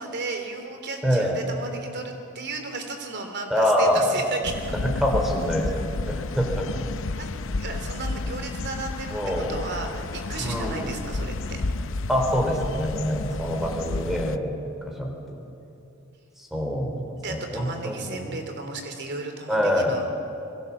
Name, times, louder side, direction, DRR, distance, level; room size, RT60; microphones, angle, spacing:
voice 1, 0.0-4.7 7.1-7.3 7.6-11.6 13.3-14.0 17.2-20.0, right 3 dB, 55° right, 5 dB, 3.3 m, -34 dB
voice 2, 1.0-1.4 3.5-4.1 5.0-5.8 6.1-6.7 9.1-9.5 10.4-10.9 12.1-14.6 15.0-15.4 16.5-18.4 19.5-20.1, equal, ahead, 1 dB, 3.9 m, -25 dB
sound 1, 4.4-14.4, left 3 dB, 65° left, 0.7 m, -31 dB
26.5 x 21.5 x 7.3 m, 2.7 s
head